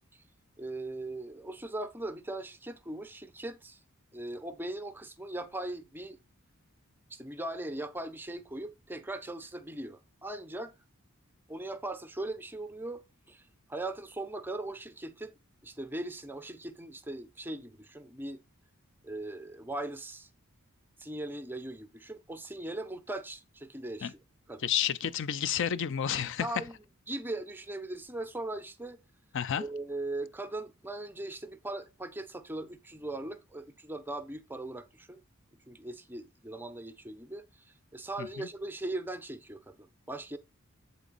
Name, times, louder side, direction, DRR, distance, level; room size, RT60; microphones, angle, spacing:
voice 1, 0.6-3.8 4.1-6.2 7.1-10.7 11.5-15.3 15.6-18.4 19.0-20.3 21.0-24.2 24.5-24.7 26.4-26.8 27.1-29.0 29.6-35.2 35.7-40.4, right 2 dB, 10° right, 0.5 m, -39 dB
voice 2, 24.6-26.5 29.3-29.6 38.2-38.5, left 8 dB, 60° left, 0.4 m, -30 dB
8.1 x 3.9 x 3.9 m
head